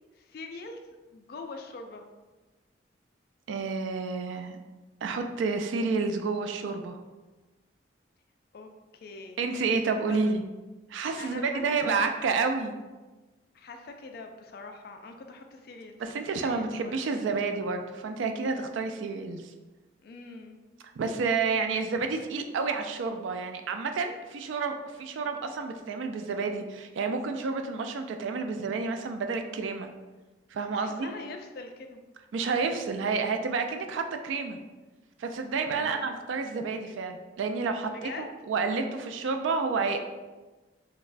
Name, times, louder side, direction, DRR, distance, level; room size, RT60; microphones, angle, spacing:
voice 1, 0.2-0.9 1.1-2.0 8.5-8.7 9.0-9.4 10.1-10.2 11.2-12.1 13.5-16.0 16.4-17.0 20.0-20.6 30.7-32.0 35.7-36.3 37.9-38.3, left 3 dB, 50° left, 4 dB, 0.3 m, -43 dB
voice 2, 3.5-4.6 5.0-7.0 9.4-10.4 10.9-12.8 16.0-19.4 21.0-29.9 30.5-31.1 32.3-34.6 35.2-40.0, right 4 dB, 80° right, 6 dB, 0.3 m, -30 dB
4.0 x 2.1 x 2.5 m, 1.2 s
head